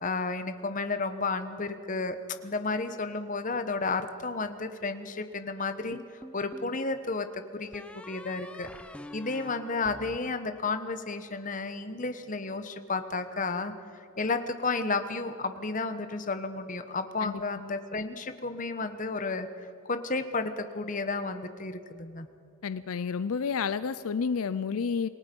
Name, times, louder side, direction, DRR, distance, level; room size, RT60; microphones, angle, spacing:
voice 1, 0.0-8.7 9.1-13.7 14.2-22.3, left 3 dB, 35° left, 9 dB, 1.1 m, -32 dB
sound 1, 5.9-6.8 7.7-11.1, left 1 dB, 5° left, 0.6 m, -47 dB
voice 2, 22.6-25.1, left 5 dB, 75° left, 15 dB, 0.5 m, -30 dB
28.0 x 18.5 x 5.4 m, 2.9 s
head